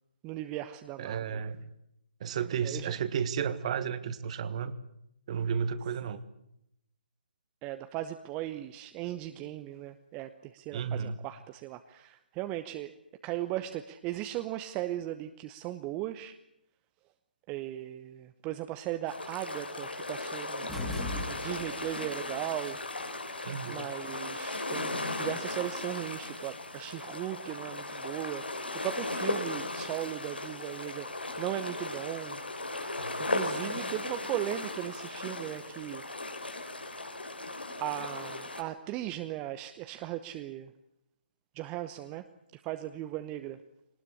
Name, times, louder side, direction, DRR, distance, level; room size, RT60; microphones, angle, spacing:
voice 1, 0.2-1.4 2.6-2.9 7.6-12.9 13.2-16.4 17.5-20.8 21.2-22.8 23.7-31.1 31.4-32.4 33.2-36.7 37.8-40.7 41.5-42.3 42.5-43.6, right 14 dB, 20° right, 9 dB, 0.9 m, -37 dB
voice 2, 1.0-1.7 2.2-4.7 5.3-6.2 10.7-11.2 23.4-23.8, right 7 dB, 40° right, 14 dB, 1.6 m, -32 dB
sound 1, 19.1-38.6, left 2 dB, 85° left, 4.2 m, -37 dB
sound 2, 20.7-21.9, left 2 dB, 5° left, 2.7 m, -37 dB
22.0 x 19.5 x 9.9 m, 0.80 s
figure-of-eight pair, 140°, 5 cm